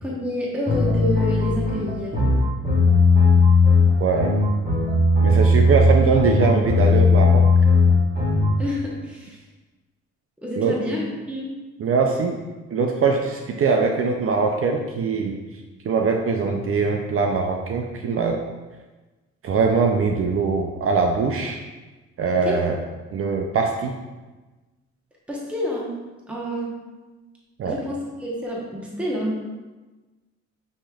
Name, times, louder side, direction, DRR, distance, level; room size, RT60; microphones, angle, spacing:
voice 1, 0.0-2.2 8.6-9.4 10.4-11.5 22.4-22.6 25.3-25.9 26.3-26.7 27.6-29.4, equal, 5° right, -4 dB, 1.0 m, -28 dB
sound 1, 0.7-8.6, left 3 dB, 30° right, 1.3 m, -17 dB
voice 2, 4.0-4.4 5.2-7.4 10.6-10.7 11.8-12.4 12.7-15.4 15.9-18.4 19.4-21.6 22.2-22.8 23.1-24.0 27.6-27.7, right 4 dB, 50° right, 3 dB, 0.5 m, -22 dB
7.2 x 3.1 x 2.3 m, 1.2 s
cardioid pair, 90°, 30 cm